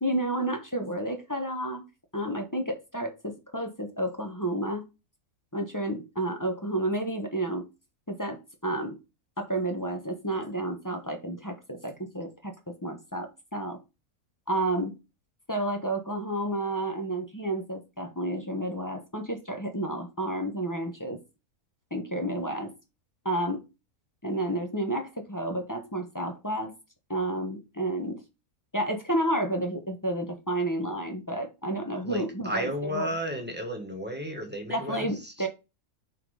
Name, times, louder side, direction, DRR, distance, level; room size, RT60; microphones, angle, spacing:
voice 1, 0.0-1.8 2.1-4.8 5.5-7.7 8.1-9.0 9.4-12.5 12.8-13.8 14.5-14.9 15.5-21.2 21.9-22.7 23.2-23.6 24.2-26.7 27.1-28.2 28.7-33.1 34.7-35.5, right 1 dB, 15° left, 1.0 m, -31 dB
voice 2, 32.0-35.3, equal, 5° right, 1.6 m, -33 dB
5.7 x 4.5 x 4.9 m
omnidirectional pair, 1.6 m